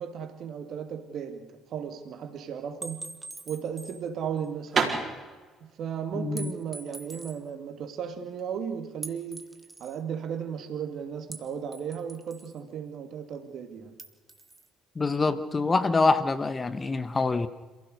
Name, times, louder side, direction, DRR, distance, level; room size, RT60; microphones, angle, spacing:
voice 1, 0.0-3.1 3.5-5.1 5.6-9.5 9.8-14.0, right 7 dB, 50° right, 2.5 m, -35 dB
sound 1, 2.8-4.1 4.4-4.5 6.4-7.4 9.0-10.0 11.3-12.6 14.0-14.7, right 2 dB, 20° right, 1.9 m, -43 dB
sound 2, 2.9-8.5, right 4 dB, 35° right, 4.5 m, -33 dB
voice 2, 6.1-6.5 14.9-17.5, left 3 dB, 25° left, 1.2 m, -25 dB
27.5 x 15.5 x 6.7 m
figure-of-eight pair, 50°, 0 cm